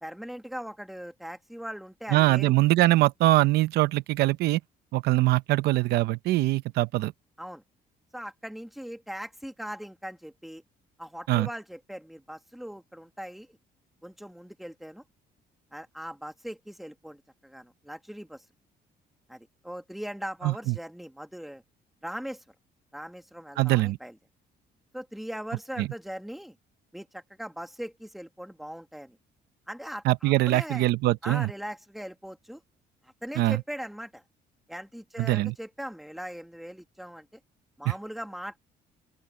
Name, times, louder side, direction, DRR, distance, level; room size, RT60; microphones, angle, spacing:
voice 1, 0.0-2.5 7.4-7.6 8.1-10.6 11.0-13.6 14.0-15.0 15.7-18.4 19.3-21.6 22.0-22.4 22.9-24.2 24.9-26.6 26.9-29.2 29.7-30.8 31.2-32.6 33.0-34.2 34.7-37.3 37.8-38.6, equal, ahead, 1.8 m, -40 dB
voice 2, 2.1-4.6 4.9-7.1 11.3-11.5 20.4-20.7 23.6-24.0 25.8-25.9 30.0-31.5 33.4-33.6 35.2-35.5 37.9-38.0, right 17 dB, 85° right, 0.7 m, -23 dB
open air
cardioid pair, 155°, 17 cm